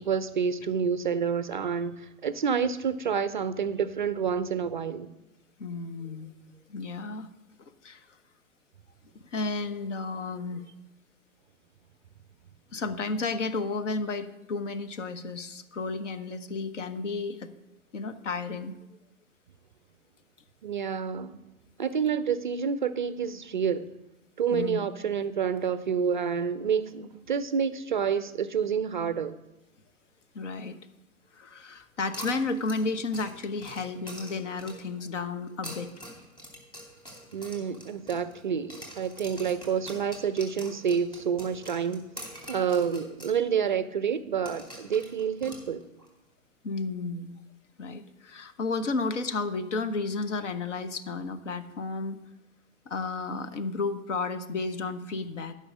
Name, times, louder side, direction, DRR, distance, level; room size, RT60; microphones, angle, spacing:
voice 1, 0.0-5.1 20.6-21.4 21.8-23.9 24.4-29.3 37.3-42.0 42.5-45.9, right 7 dB, 35° right, 0.4 m, -28 dB
voice 2, 5.6-6.3 6.7-7.3 7.8-8.1 9.1-10.6 12.7-17.5 17.9-18.8 24.5-24.8 30.3-30.8 31.3-35.9 46.6-47.3 47.8-52.2 52.9-55.5, left 3 dB, 60° left, 1.0 m, -32 dB
sound 1, 32.1-35.0 35.5-38.4 38.7-43.4 43.7-43.8 44.4-46.1, equal, 10° left, 2.6 m, -44 dB
13.0 x 5.5 x 6.3 m
figure-of-eight pair, 115°, 42 cm